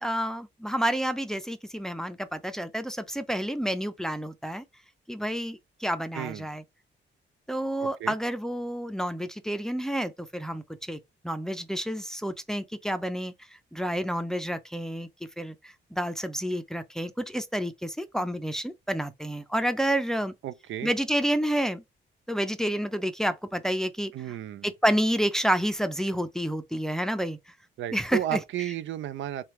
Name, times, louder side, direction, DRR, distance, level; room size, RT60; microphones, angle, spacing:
voice 1, 0.0-4.6 5.1-6.6 7.5-13.3 13.7-15.1 15.4-20.3 20.8-21.8 22.3-24.1 24.6-27.4 27.9-28.4, equal, 5° left, 0.5 m, -29 dB
voice 2, 6.1-6.5 7.8-8.1 20.4-20.9 24.1-24.7 27.8-29.4, right 12 dB, 75° right, 0.4 m, -33 dB
3.4 x 3.3 x 3.0 m
cardioid pair, 100°, 20 cm